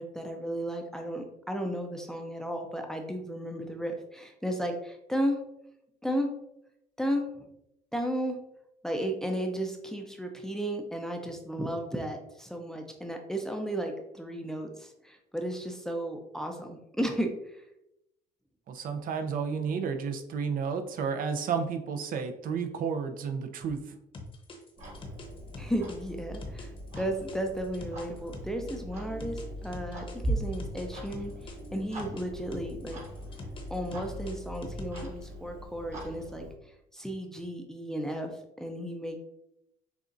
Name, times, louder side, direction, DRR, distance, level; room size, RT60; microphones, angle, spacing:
voice 1, 0.0-5.4 6.0-6.3 7.0-7.5 7.9-8.4 8.8-17.6 25.6-33.0 33.7-39.2, equal, 5° left, 3 dB, 0.5 m, -34 dB
voice 2, 18.7-23.9, right 6 dB, 55° right, 6 dB, 0.6 m, -32 dB
sound 1, 24.1-28.8 29.2-32.2 32.5-35.2, left 3 dB, 30° left, 0.9 m, -44 dB
Clock, 24.8-36.5, right 1 dB, 40° right, 1.6 m, -40 dB
6.7 x 2.4 x 2.6 m, 0.83 s
cardioid pair, 110°, 17 cm